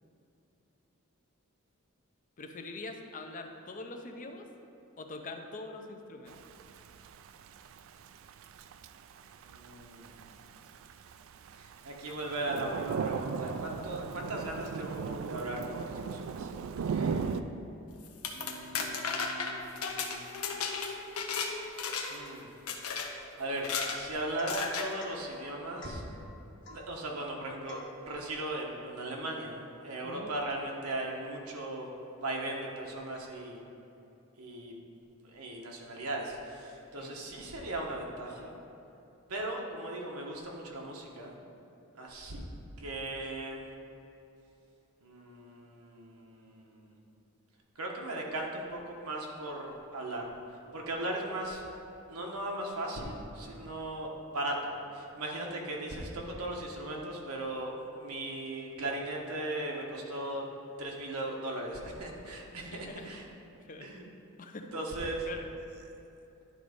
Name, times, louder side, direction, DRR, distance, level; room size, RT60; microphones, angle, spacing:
voice 1, 2.4-4.5 5.0-6.4 17.2-17.5 30.0-30.3 37.0-37.2 56.9-57.1 62.7-63.1 63.7-63.9 64.4-64.7 65.3-65.5, left 3 dB, 35° left, 4 dB, 0.6 m, -44 dB
Thunder / Rain, 6.3-17.4, right 5 dB, 65° right, 0.3 m, -37 dB
voice 2, 9.5-10.3 11.6-16.5 16.9-17.3 18.3-20.2 22.1-22.5 23.1-23.7 23.9-26.0 26.7-31.9 32.2-33.6 34.4-34.7 35.3-38.5 39.3-41.3 42.0-42.4 42.8-43.7 45.0-47.0 47.8-50.3 50.7-51.6 52.1-57.7 58.0-60.4 60.8-63.3 63.8-64.0 64.7-65.3, right 1 dB, 85° right, 0 dB, 1.2 m, -38 dB
sound 1, 18.0-21.5 21.8-22.3 22.7-23.1 23.6-24.0 24.5-24.9, left 5 dB, 90° left, 0.8 m, -34 dB
Domestic sounds home sounds / Chink clink / Drip, 24.4-24.7 25.0-25.2 25.8-26.1 26.6-26.9 27.7-28.0, left 2 dB, 55° left, 1.1 m, -48 dB
10.5 x 4.0 x 5.0 m, 2.9 s
head